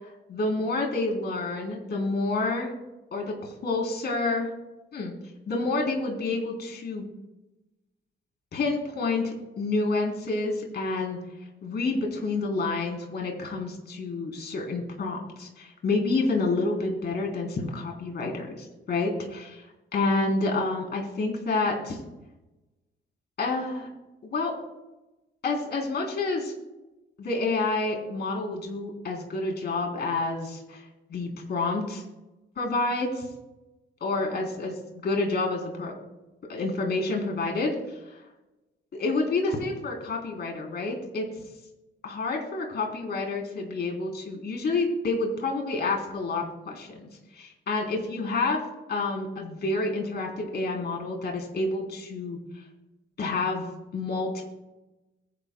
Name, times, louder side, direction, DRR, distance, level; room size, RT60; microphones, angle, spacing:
voice 1, 0.3-2.7 3.1-4.5 4.9-5.1 5.5-7.1 8.5-11.2 11.6-19.7 19.9-22.0 23.4-23.9 24.2-24.5 25.4-26.5 27.2-30.8 31.1-32.0 32.6-33.2 34.0-34.8 35.0-35.9 36.5-37.7 38.1-38.2 38.9-41.3 42.0-48.6 48.9-52.4 53.2-53.6 53.9-54.4, left 3 dB, 55° left, 1 dB, 3.7 m, -28 dB
22.0 x 10.5 x 2.3 m, 1.0 s
cardioid pair, 90°, 20 cm